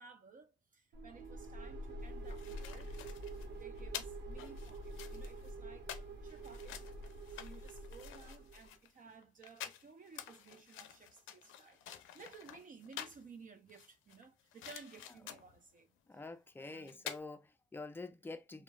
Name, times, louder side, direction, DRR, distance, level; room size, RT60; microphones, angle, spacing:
voice 1, 0.0-2.9 3.5-6.8 7.3-15.9 16.6-17.0, right 4 dB, 40° right, 0.6 m, -57 dB
sound 1, 0.9-8.7, right 1 dB, 60° right, 1.0 m, -46 dB
sound 2, 2.0-13.3 13.7-15.6 16.6-16.7 16.9-17.2, left 10 dB, 80° left, 0.5 m, -50 dB
voice 2, 16.1-18.6, left 3 dB, 10° left, 0.4 m, -47 dB
3.0 x 2.2 x 2.3 m
cardioid pair, 90°, 20 cm